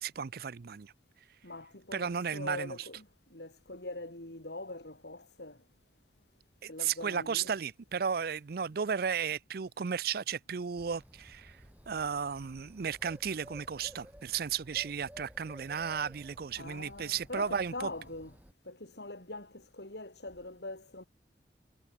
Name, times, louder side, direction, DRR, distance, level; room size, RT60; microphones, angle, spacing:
voice 1, 0.0-0.9 1.9-2.9 6.6-17.9, right 7 dB, 60° right, 0.5 m, -34 dB
voice 2, 1.4-5.6 6.7-7.5 16.6-18.3 18.6-21.1, left 2 dB, 70° left, 4.2 m, -43 dB
Bird, 10.8-18.5, equal, 10° right, 4.7 m, -54 dB
head